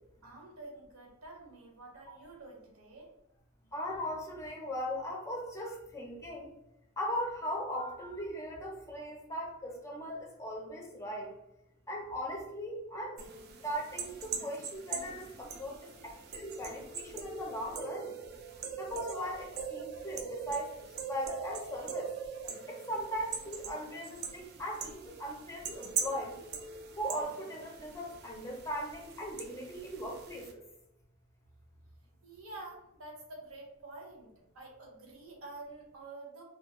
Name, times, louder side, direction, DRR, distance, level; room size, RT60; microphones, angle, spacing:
voice 1, 0.2-3.1 32.2-36.4, right 2 dB, 80° right, 0 dB, 0.7 m, -48 dB
voice 2, 3.7-6.5 7.0-11.3 11.9-13.2 13.6-18.1 18.8-22.1 22.7-26.4 27.0-30.6, equal, 15° left, 0 dB, 0.4 m, -39 dB
sound 1, 13.2-30.5, right 5 dB, 50° right, 0.3 m, -42 dB
2.3 x 2.2 x 2.9 m, 0.85 s
head